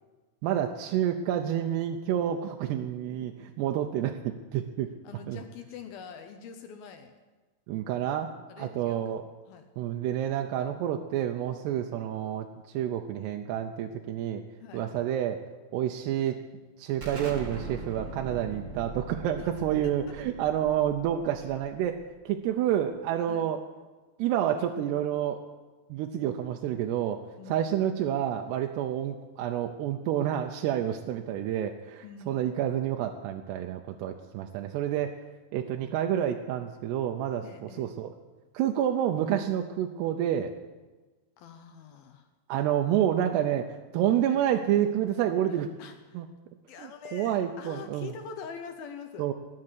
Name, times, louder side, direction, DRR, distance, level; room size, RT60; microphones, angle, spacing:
voice 1, 0.4-4.9 5.3-5.4 7.7-8.3 8.6-9.3 9.8-14.4 14.7-15.4 15.7-16.4 16.8-23.6 24.2-25.4 25.9-27.2 27.5-35.2 35.5-38.1 38.5-40.5 42.5-45.7 46.1-46.3 46.8-48.1 49.2-49.3, right 10 dB, 80° right, 4 dB, 2.9 m, -29 dB
voice 2, 5.0-7.1 8.5-9.1 9.5-9.7 14.6-14.9 19.4-19.5 19.8-19.9 23.3-23.5 27.4-27.6 32.0-32.4 35.8-36.1 37.4-37.9 41.4-42.3 45.8-46.2 46.7-49.3, left 6 dB, 70° left, 7 dB, 2.6 m, -44 dB
Explosion, 17.0-22.4, right 3 dB, 40° right, 1.0 m, -41 dB
19.5 x 7.7 x 9.7 m, 1.3 s
omnidirectional pair, 4.8 m